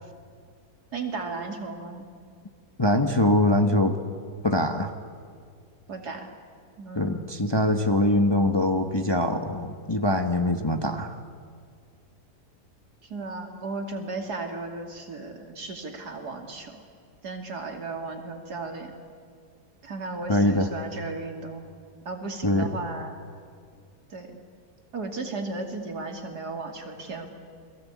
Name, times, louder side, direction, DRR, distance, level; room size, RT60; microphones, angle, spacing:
voice 1, 0.9-2.1 5.9-6.3 6.8-7.4 13.0-16.8 17.2-18.9 19.8-21.7 22.0-23.2 24.1-24.4 24.9-27.3, right 3 dB, 70° right, 3 dB, 3.2 m, -35 dB
voice 2, 2.8-4.0 4.4-4.9 6.9-11.2 20.3-20.7 22.4-22.7, left 1 dB, 20° left, 6 dB, 1.0 m, -23 dB
29.5 x 22.0 x 8.4 m, 2.2 s
omnidirectional pair, 1.8 m